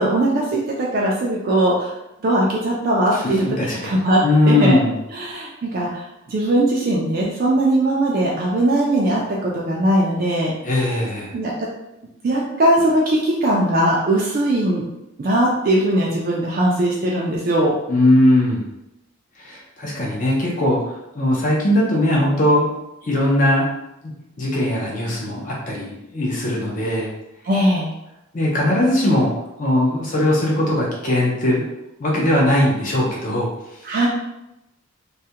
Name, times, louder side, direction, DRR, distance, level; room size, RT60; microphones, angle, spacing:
voice 1, 0.0-1.9 2.2-3.5 3.8-4.2 4.5-4.8 5.1-10.5 11.3-11.7 12.2-14.8 15.2-17.8 27.4-27.9 33.8-34.1, right 1 dB, 40° right, -4 dB, 0.3 m, -19 dB
voice 2, 3.1-3.9 4.2-4.9 10.6-11.3 17.9-18.6 19.4-22.7 23.0-23.7 24.4-27.1 28.3-29.3 29.6-31.7 32.0-33.5 33.8-33.9, left 1 dB, 40° left, -3 dB, 0.4 m, -19 dB
2.3 x 2.1 x 2.7 m, 0.88 s
head